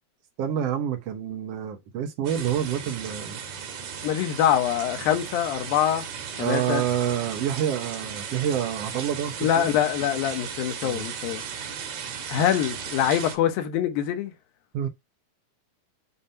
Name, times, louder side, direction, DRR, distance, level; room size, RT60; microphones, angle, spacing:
voice 1, 0.4-3.4 6.4-9.7 10.8-11.1 14.7-14.9, right 9 dB, 90° right, 1.3 m, -28 dB
sound 1, 2.2-13.4, right 7 dB, 60° right, 2.7 m, -36 dB
voice 2, 4.0-6.1 6.4-6.8 9.4-11.4 12.3-14.3, left 10 dB, 85° left, 2.7 m, -24 dB
7.1 x 2.7 x 5.5 m
omnidirectional pair, 4.0 m